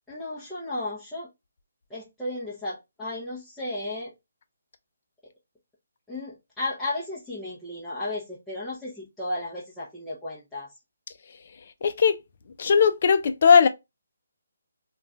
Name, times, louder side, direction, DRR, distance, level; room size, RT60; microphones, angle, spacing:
voice 1, 0.1-1.3 1.9-4.1 6.1-10.7, left 2 dB, 5° left, 0.7 m, -34 dB
voice 2, 11.8-12.2 12.6-13.7, left 6 dB, 50° left, 0.4 m, -18 dB
2.4 x 2.3 x 3.2 m
hypercardioid pair, 160°, 0 cm